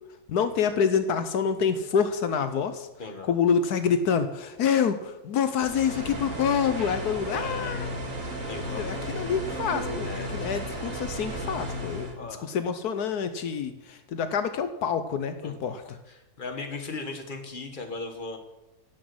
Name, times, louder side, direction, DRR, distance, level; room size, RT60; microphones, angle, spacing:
voice 1, 0.3-2.9 3.3-7.9 8.8-12.1 12.4-15.8, left 7 dB, 80° left, 9 dB, 1.4 m, -27 dB
voice 2, 3.0-3.3 7.3-7.9 8.5-9.2 10.0-10.5 12.2-12.5 15.4-18.4, left 3 dB, 30° left, 4 dB, 1.9 m, -38 dB
sound 1, 5.6-12.1, equal, 55° right, 2.7 m, -34 dB
17.0 x 6.2 x 7.9 m, 0.99 s
omnidirectional pair, 1.6 m